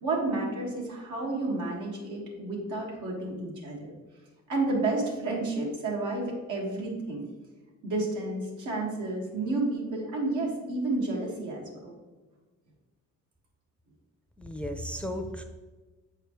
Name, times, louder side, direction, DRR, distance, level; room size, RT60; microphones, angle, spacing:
voice 1, 0.0-3.9 4.5-7.2 7.8-11.9, right 2 dB, 80° right, -2 dB, 1.9 m, -31 dB
voice 2, 14.4-15.4, equal, 5° left, 5 dB, 0.6 m, -35 dB
7.5 x 4.8 x 3.1 m, 1.2 s
cardioid pair, 90°, 30 cm